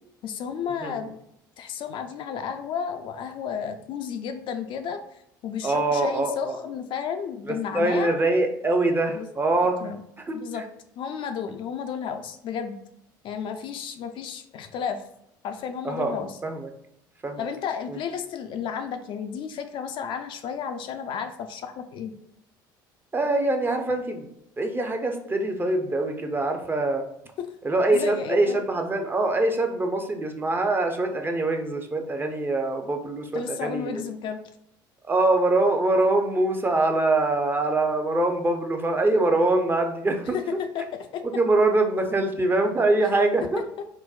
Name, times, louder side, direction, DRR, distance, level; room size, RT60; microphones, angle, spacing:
voice 1, 0.2-1.2 1.6-5.0 5.4-8.2 9.1-9.3 9.8-10.0 10.3-10.6 11.0-12.8 13.2-15.0 15.4-16.3 17.4-22.1 27.4-27.5 27.9-28.6 33.3-34.4 40.3-40.4 40.7-40.8 41.1-41.2 43.8-43.9, left 7 dB, 50° left, 6 dB, 0.3 m, -32 dB
voice 2, 5.6-6.6 7.5-9.9 10.2-10.6 15.8-16.7 17.2-17.5 17.9-18.0 23.1-24.3 24.6-27.0 27.6-34.0 35.1-40.4 41.2-43.6, right 2 dB, 20° right, 4 dB, 0.5 m, -24 dB
3.9 x 2.0 x 2.3 m, 0.74 s
hypercardioid pair, 65°, 11 cm